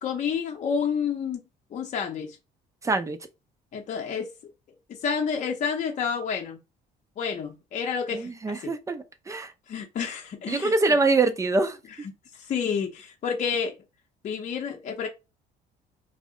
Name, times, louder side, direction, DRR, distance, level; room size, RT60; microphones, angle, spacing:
voice 1, 0.0-1.4 1.7-2.4 3.7-4.3 4.9-6.6 7.2-8.3 9.7-10.7 12.3-13.8 14.2-15.1, left 6 dB, 45° left, 0.6 m, -29 dB
voice 2, 2.8-3.2 8.1-9.5 10.5-11.8, right 3 dB, 20° right, 0.4 m, -24 dB
2.6 x 2.0 x 3.7 m
cardioid pair, 110°, 17 cm